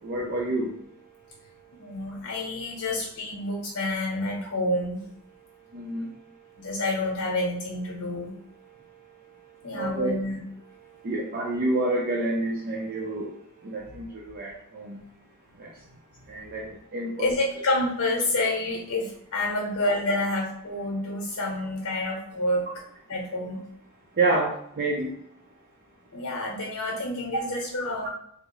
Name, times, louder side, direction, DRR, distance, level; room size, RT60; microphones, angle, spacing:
voice 1, 0.0-0.8 5.7-6.2 8.7-9.0 9.2-10.1 10.8-15.0 15.6-15.7 16.3-17.3 24.2-25.2 28.0-28.1, right 2 dB, 45° right, -3 dB, 0.4 m, -29 dB
voice 2, 1.8-5.0 6.6-8.3 9.6-10.4 17.2-22.6 23.1-23.6 26.1-28.1, left 1 dB, 90° left, -1 dB, 0.8 m, -28 dB
3.5 x 2.0 x 2.9 m, 0.70 s
head